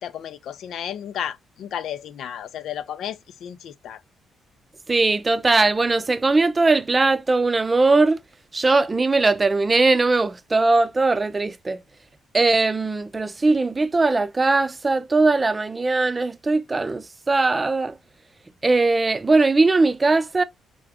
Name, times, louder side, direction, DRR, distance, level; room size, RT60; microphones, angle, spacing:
voice 1, 0.0-4.0, left 9 dB, 75° left, 0.6 m, -33 dB
voice 2, 4.9-8.2 8.5-11.8 12.3-18.0 18.6-20.4, right 3 dB, 25° right, 0.5 m, -20 dB
3.8 x 3.6 x 3.4 m
cardioid pair, 90°, 0 cm